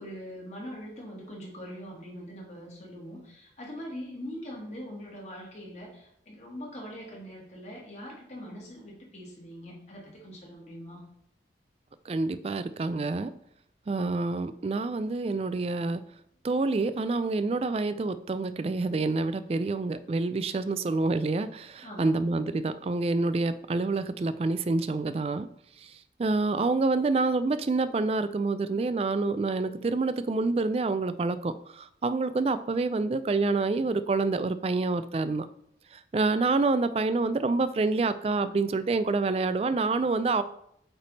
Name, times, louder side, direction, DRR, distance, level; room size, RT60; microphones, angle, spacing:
voice 1, 0.0-11.0 21.8-22.3, equal, 40° left, -3 dB, 1.9 m, -42 dB
voice 2, 12.1-13.3 13.9-16.0 16.4-25.5 26.2-35.5 36.1-40.4, right 3 dB, 35° right, 12 dB, 0.3 m, -27 dB
8.1 x 3.4 x 4.1 m, 0.72 s
head